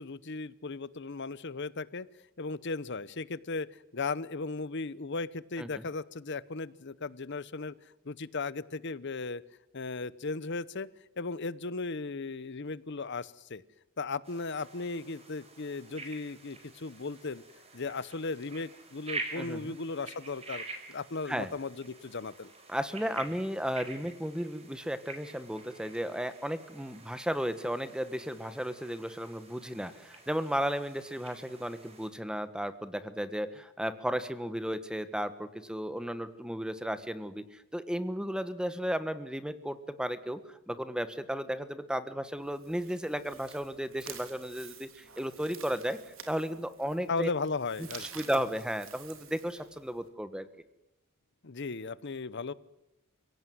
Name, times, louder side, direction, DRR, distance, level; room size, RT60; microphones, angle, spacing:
voice 1, 0.0-2.1 2.4-7.7 8.0-9.4 9.7-10.9 11.2-13.6 14.0-17.4 17.7-20.6 20.9-22.5 47.1-48.2 51.4-52.5, left 3 dB, 55° left, 18 dB, 0.9 m, -36 dB
sound 1, 14.2-32.1, right 3 dB, 30° right, 5.0 m, -47 dB
voice 2, 19.4-19.8 21.3-21.5 22.7-46.0 46.3-47.3 48.0-50.5, equal, 5° right, 12 dB, 1.4 m, -34 dB
sound 2, 42.4-50.1, right 8 dB, 65° right, 3.6 m, -50 dB
29.5 x 17.5 x 9.5 m, 0.91 s
head